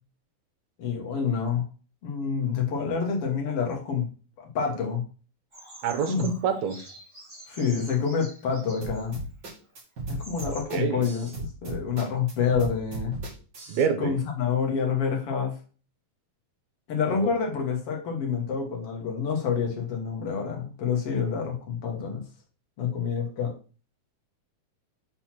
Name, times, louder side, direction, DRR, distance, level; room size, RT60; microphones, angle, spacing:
voice 1, 0.8-1.6 2.0-4.1 4.4-5.0 6.1-6.4 7.5-9.2 10.1-11.3 11.6-13.1 14.0-15.6 16.9-22.2 22.8-23.5, left 6 dB, 55° left, 0 dB, 2.2 m, -27 dB
Bird vocalization bird call bird song, 5.5-9.1 9.7-9.8 10.1-10.6, right 1 dB, 10° right, 1.6 m, -46 dB
voice 2, 5.8-6.8 10.7-11.0 13.7-14.1 17.1-17.3, right 6 dB, 75° right, 6 dB, 2.4 m, -27 dB
sound 1, 8.8-13.9, right 3 dB, 40° right, 2.3 m, -36 dB
5.8 x 4.1 x 5.9 m, 0.37 s
omnidirectional pair, 3.4 m